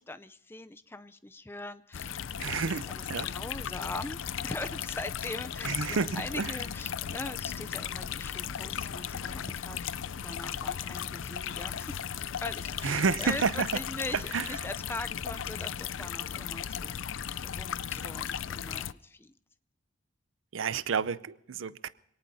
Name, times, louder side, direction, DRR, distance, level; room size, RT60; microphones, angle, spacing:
voice 1, 0.0-9.9 10.2-12.0 12.4-16.9 17.4-19.4, left 2 dB, 10° left, 0.5 m, -41 dB
sound 1, 1.9-18.9, left 8 dB, 85° left, 0.5 m, -36 dB
voice 2, 2.4-3.3 5.6-6.5 12.8-13.7 14.3-14.5 20.5-21.9, right 5 dB, 90° right, 0.6 m, -30 dB
25.5 x 18.5 x 2.7 m
head